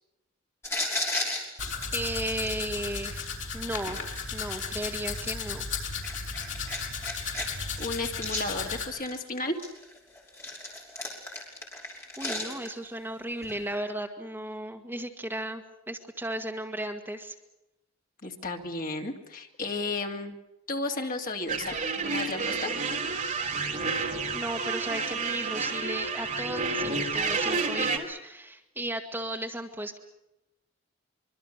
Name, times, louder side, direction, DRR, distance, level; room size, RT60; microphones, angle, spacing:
sound 1, 0.6-3.3 3.9-4.7 5.1-7.5 7.7-9.2 9.6-12.9 13.4-13.6, left 2 dB, 15° left, 5.9 m, -35 dB
Domestic sounds home sounds, 1.6-8.9, left 5 dB, 65° left, 5.6 m, -35 dB
voice 1, 1.9-4.0 4.3-5.7 12.2-17.4 24.0-30.0, right 1 dB, 10° right, 3 dB, 1.8 m, -35 dB
voice 2, 7.8-9.6 18.2-20.4 20.7-22.7, left 2 dB, 40° left, 3 dB, 2.6 m, -33 dB
sound 2, 21.5-28.0, right 4 dB, 40° right, 3.3 m, -30 dB
25.0 x 24.0 x 6.8 m, 0.92 s
head